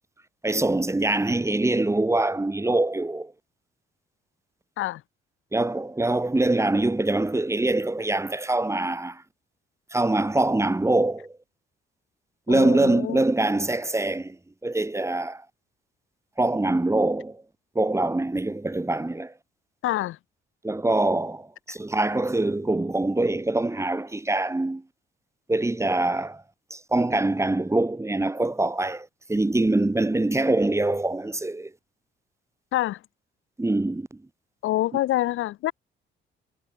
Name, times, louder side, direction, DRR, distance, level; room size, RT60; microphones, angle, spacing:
voice 1, 0.4-3.3 5.5-9.2 9.9-11.3 12.5-14.4 14.6-15.4 16.4-17.4 17.8-19.3 20.6-24.8 25.5-26.4 26.7-31.7 33.6-34.1, right 2 dB, 15° right, 3.8 m, -24 dB
voice 2, 12.5-13.2 19.8-20.2 32.7-33.0 34.6-35.7, left 15 dB, 85° left, 5.4 m, -26 dB
cardioid pair, 90°, 20 cm